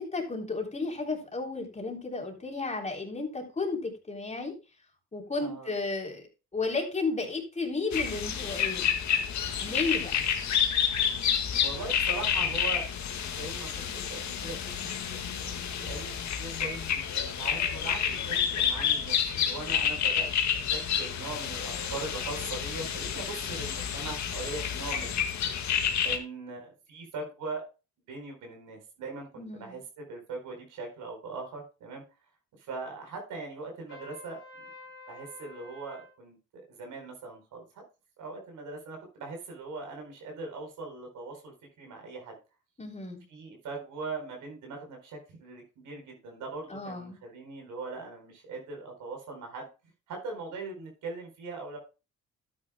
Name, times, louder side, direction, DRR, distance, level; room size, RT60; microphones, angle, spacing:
voice 1, 0.0-4.5 5.1-6.2 6.5-8.9 9.6-10.3 29.4-29.8 42.8-43.2 46.7-47.2, left 3 dB, 20° left, 1 dB, 3.4 m, -33 dB
voice 2, 5.4-5.7 9.5-9.9 11.6-20.3 20.5-25.2 25.7-25.8 26.0-27.6 28.1-32.0 32.6-34.4 35.1-37.8 38.2-42.4 43.3-49.7 50.1-51.8, right 3 dB, 80° right, 2 dB, 4.4 m, -41 dB
sound 1, 7.9-26.2, left 8 dB, 65° left, 1.7 m, -29 dB
Trumpet, 33.9-36.1, left 3 dB, 50° left, 3.7 m, -49 dB
12.0 x 9.6 x 2.2 m, 0.30 s
cardioid pair, 90°, 30 cm